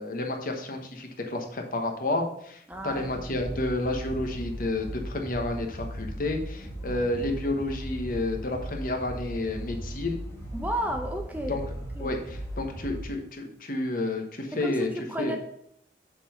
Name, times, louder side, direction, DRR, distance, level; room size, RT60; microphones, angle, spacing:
voice 1, 0.0-10.2 11.5-11.6 12.0-14.9 15.2-15.3, left 2 dB, 50° left, 3 dB, 1.1 m, -30 dB
sound 1, 2.7-13.0, equal, 15° left, 1.6 m, -38 dB
voice 2, 2.7-3.1 10.5-11.6 12.0-12.1 14.5-15.4, right 1 dB, 10° right, 4 dB, 0.7 m, -32 dB
7.4 x 3.9 x 6.4 m, 0.71 s
head